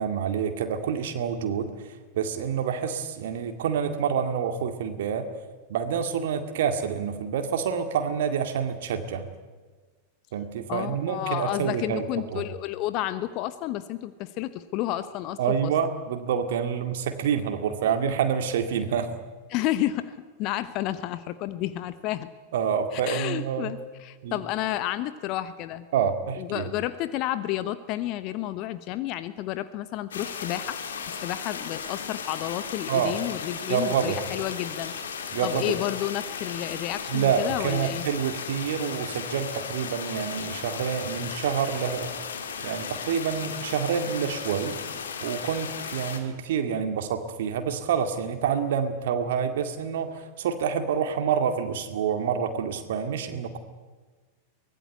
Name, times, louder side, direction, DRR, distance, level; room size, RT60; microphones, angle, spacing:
voice 1, 0.0-5.3 5.7-9.2 10.3-12.1 12.3-12.4 15.4-19.1 22.5-23.7 24.2-24.4 25.9-26.7 32.9-33.2 33.7-34.2 35.3-35.7 37.1-42.1 42.6-44.8 45.2-53.6, right 7 dB, 55° right, 7 dB, 2.1 m, -27 dB
voice 2, 10.7-15.7 19.5-22.3 22.9-25.9 26.4-30.8 31.1-34.9 35.4-38.1, left 13 dB, 40° left, 13 dB, 1.0 m, -31 dB
sound 1, 30.1-46.2, left 6 dB, 65° left, 2.6 m, -36 dB
23.5 x 19.0 x 8.4 m, 1.4 s
figure-of-eight pair, 90°, 0 cm